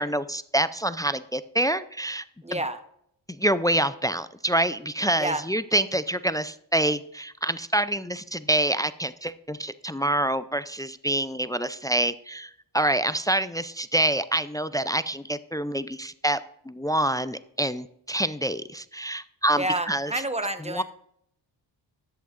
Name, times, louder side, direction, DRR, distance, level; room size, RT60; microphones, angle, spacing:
voice 1, 0.0-2.2 2.5-2.6 3.3-16.4 16.7-20.1 20.7-20.8, right 1 dB, 10° left, 14 dB, 0.3 m, -26 dB
voice 2, 2.4-2.8 5.2-5.4 19.6-20.8, right 1 dB, 15° right, 8 dB, 1.1 m, -28 dB
13.0 x 8.6 x 2.5 m, 0.70 s
supercardioid pair, 50°, 47 cm